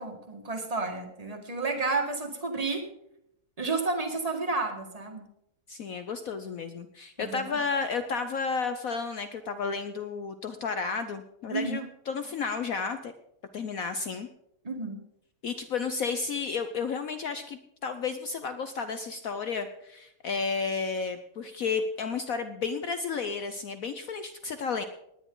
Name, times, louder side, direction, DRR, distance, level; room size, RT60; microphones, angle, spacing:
voice 1, 0.0-2.8 3.6-5.2 7.2-7.6 11.5-11.9 14.6-15.0, right 3 dB, 20° right, 4 dB, 1.6 m, -31 dB
voice 2, 5.7-13.1 13.5-14.3 15.4-24.8, left 5 dB, 75° left, 9 dB, 0.7 m, -32 dB
19.0 x 10.0 x 3.8 m, 0.78 s
omnidirectional pair, 2.4 m